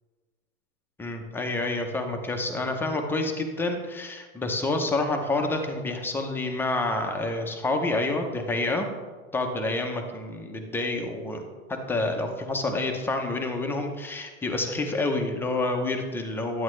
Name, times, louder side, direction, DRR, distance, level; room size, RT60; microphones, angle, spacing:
voice 1, 1.0-8.9 9.3-16.6, left 2 dB, 5° left, 3 dB, 0.6 m, -28 dB
11.0 x 8.6 x 3.1 m, 1.4 s
hypercardioid pair, 135°, 44 cm